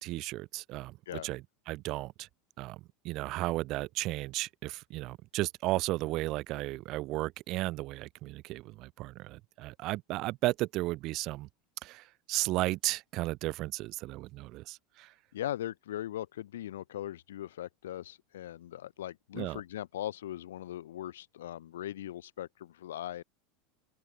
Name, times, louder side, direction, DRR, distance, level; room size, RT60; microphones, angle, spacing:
voice 1, 0.0-2.3 2.6-11.5 11.8-15.1 19.3-19.6, right 19 dB, 55° right, 2.2 m, -34 dB
voice 2, 15.3-23.2, left 12 dB, 90° left, 3.0 m, -39 dB
open air
supercardioid pair, 110°, 0 cm